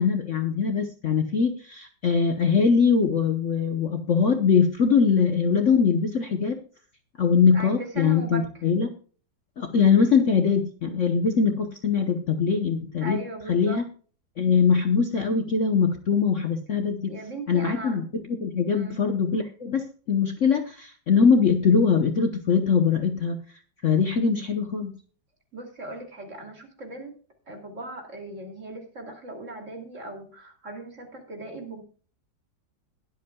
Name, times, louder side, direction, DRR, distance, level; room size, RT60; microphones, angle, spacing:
voice 1, 0.0-6.6 7.2-8.9 9.6-13.2 13.5-13.8 14.4-17.2 17.5-23.4 23.8-24.9, left 6 dB, 50° left, 6 dB, 1.1 m, -22 dB
voice 2, 7.5-8.4 13.0-13.8 17.1-18.0 18.7-19.0 25.5-27.1 27.5-31.8, right 2 dB, 40° right, 3 dB, 3.0 m, -38 dB
21.5 x 8.2 x 2.3 m, 0.41 s
omnidirectional pair, 2.1 m